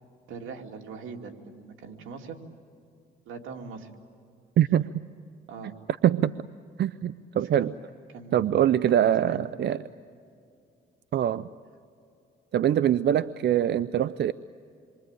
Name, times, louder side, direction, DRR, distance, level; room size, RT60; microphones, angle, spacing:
voice 1, 0.3-2.4 3.3-3.9 5.5-5.8 7.4-7.7 8.1-8.6 8.9-9.4, right 5 dB, 85° right, 3 dB, 2.8 m, -41 dB
voice 2, 4.6-4.9 6.0-6.3 6.8-7.7 8.3-9.8 11.1-11.5 12.5-14.3, right 10 dB, 60° right, 15 dB, 0.6 m, -23 dB
27.5 x 23.5 x 9.1 m, 2.5 s
cardioid pair, 90°, 20 cm